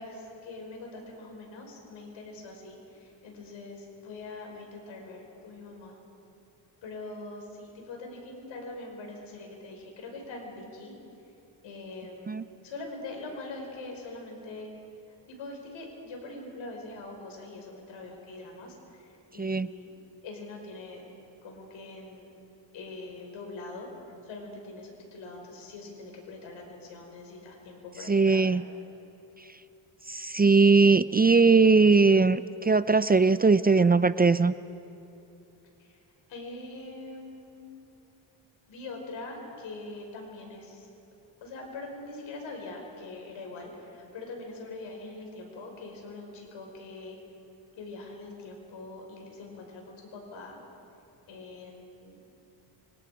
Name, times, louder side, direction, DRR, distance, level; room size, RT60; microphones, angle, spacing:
voice 1, 0.0-6.0 6.8-10.9 11.6-12.4 12.6-14.7 15.1-19.9 20.2-21.0 21.4-22.3 22.7-23.9 24.2-28.6 35.8-36.0 36.3-37.7 38.7-40.9 41.4-47.2 47.8-50.6 51.3-52.2, left 2 dB, 85° left, 1 dB, 5.7 m, -43 dB
voice 2, 19.4-19.7 28.1-28.6 30.1-34.5, right 4 dB, 20° right, 14 dB, 0.5 m, -20 dB
29.5 x 26.5 x 5.1 m, 2.9 s
cardioid pair, 80°, 45 cm